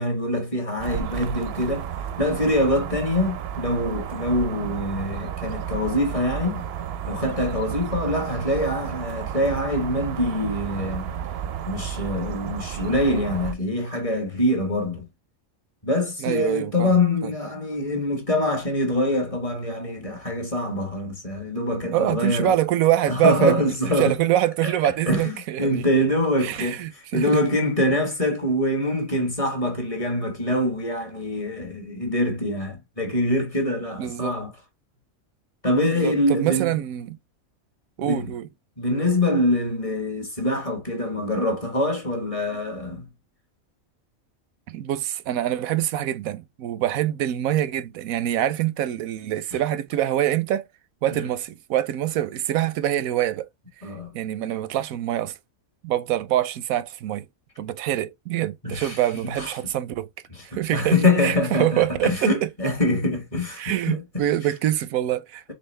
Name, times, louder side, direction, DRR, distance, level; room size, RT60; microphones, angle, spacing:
voice 1, 0.0-1.9 2.2-6.6 7.1-11.1 11.6-15.1 15.8-22.5 23.1-24.2 24.6-34.5 35.6-36.7 38.0-38.3 38.8-43.1 49.5-49.6 51.1-51.3 53.8-54.1 58.6-59.5 60.3-64.0, left 1 dB, 25° left, 1.1 m, -24 dB
sound 1, 0.8-13.5, right 9 dB, 60° right, 0.7 m, -32 dB
voice 2, 16.2-17.3 21.9-25.8 26.4-27.4 34.0-34.3 35.9-37.2 38.0-38.5 44.7-50.7 51.0-53.5 54.1-55.3 55.8-57.2 57.6-60.1 60.4-61.0 61.2-62.5 63.6-65.5, right 12 dB, 85° right, 1.0 m, -25 dB
4.3 x 3.5 x 3.2 m
omnidirectional pair, 1.4 m